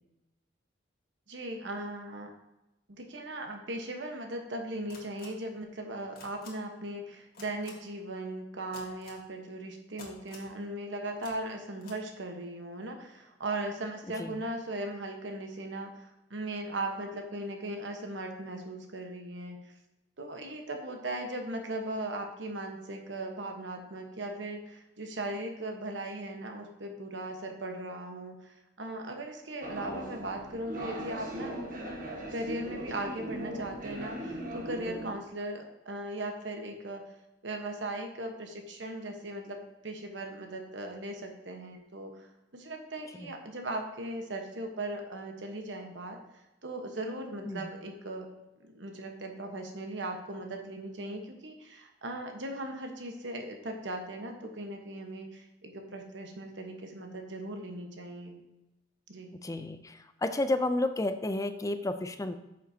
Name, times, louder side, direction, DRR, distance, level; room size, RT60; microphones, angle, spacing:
voice 1, 1.3-2.3 2.9-19.6 20.2-28.3 28.8-31.6 32.3-37.0 37.4-42.3 42.5-46.2 46.6-48.3 48.6-58.4 59.1-59.4, right 1 dB, 70° right, 3 dB, 1.2 m, -38 dB
sound 1, 4.9-5.3 6.1-6.5 7.3-7.7 8.7-9.2 10.0-10.5 11.2-11.3 11.8-12.0, left 4 dB, 50° left, 1.7 m, -49 dB
sound 2, 29.6-35.1, right 1 dB, 50° right, 1.3 m, -39 dB
voice 2, 59.4-59.9 60.2-62.3, left 2 dB, 20° left, 10 dB, 0.4 m, -31 dB
9.2 x 6.4 x 2.8 m, 0.95 s
head